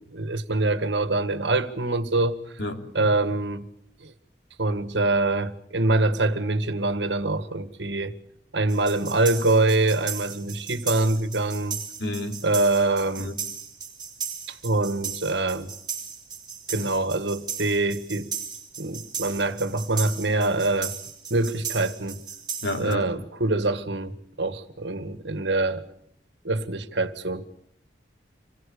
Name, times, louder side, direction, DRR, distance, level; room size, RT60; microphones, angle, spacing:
voice 1, 0.0-2.4 2.9-3.7 4.0-4.1 4.6-8.2 8.5-11.8 12.4-13.3 14.5-15.7 16.7-18.3 18.8-20.9 21.3-22.2 22.8-25.8 26.4-27.4, right 2 dB, 85° right, 1.8 m, -24 dB
voice 2, 2.6-3.1 12.0-12.4 13.2-13.3 16.7-16.9 22.6-23.1, left 1 dB, 80° left, 3.3 m, -31 dB
sound 1, 8.7-22.9, right 7 dB, 25° right, 3.6 m, -36 dB
27.0 x 21.5 x 7.0 m
head